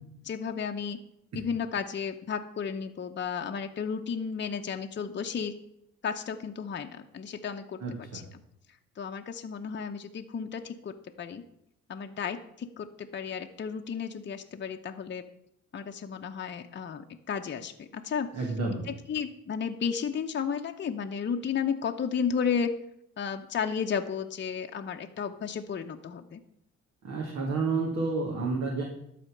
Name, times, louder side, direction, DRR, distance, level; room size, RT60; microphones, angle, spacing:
voice 1, 0.3-1.0 1.3-5.5 6.0-8.2 9.0-11.4 11.9-15.2 15.7-18.3 18.9-22.7 23.2-26.4, left 6 dB, 35° left, 4 dB, 0.8 m, -33 dB
voice 2, 7.8-8.2 18.3-18.9 27.0-28.8, right 3 dB, 60° right, -1 dB, 2.4 m, -30 dB
12.0 x 4.3 x 7.8 m, 0.77 s
cardioid pair, 90°, 30 cm